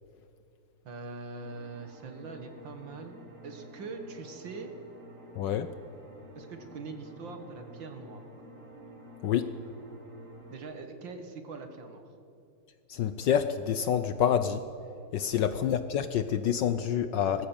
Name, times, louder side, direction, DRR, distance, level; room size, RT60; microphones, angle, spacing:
voice 1, 0.8-4.7 6.3-8.2 10.5-12.0 15.3-15.7, right 4 dB, 60° right, 6 dB, 2.3 m, -43 dB
sound 1, 1.4-10.6, right 1 dB, 35° right, 2.4 m, -50 dB
voice 2, 5.4-5.7 9.2-9.5 12.9-14.6 15.1-17.5, left 9 dB, 70° left, 11 dB, 1.2 m, -27 dB
19.5 x 15.0 x 8.9 m, 2.6 s
omnidirectional pair, 2.4 m